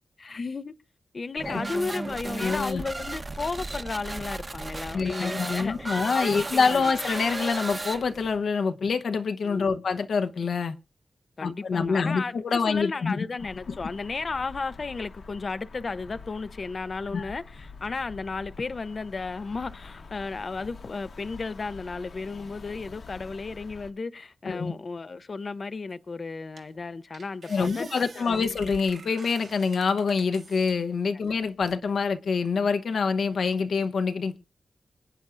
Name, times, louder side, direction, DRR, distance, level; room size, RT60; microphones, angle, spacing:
voice 1, 0.2-0.7 1.1-6.8 9.4-9.8 11.4-28.6 31.1-31.3, left 4 dB, 45° left, 0.5 m, -34 dB
sound 1, 1.4-8.4, right 2 dB, 30° right, 1.0 m, -35 dB
voice 2, 2.4-2.8 4.9-10.8 11.4-13.2 13.7-13.8 17.1-17.3 24.5-24.7 27.5-34.4, left 5 dB, 80° left, 0.9 m, -26 dB
sound 2, 13.4-23.9, left 4 dB, 65° left, 1.1 m, -46 dB
sound 3, 25.9-26.0 26.6-26.8 27.1-30.7 31.3-31.9, right 5 dB, 85° right, 1.7 m, -47 dB
26.0 x 9.3 x 2.5 m
wide cardioid pair, 140°, 0 cm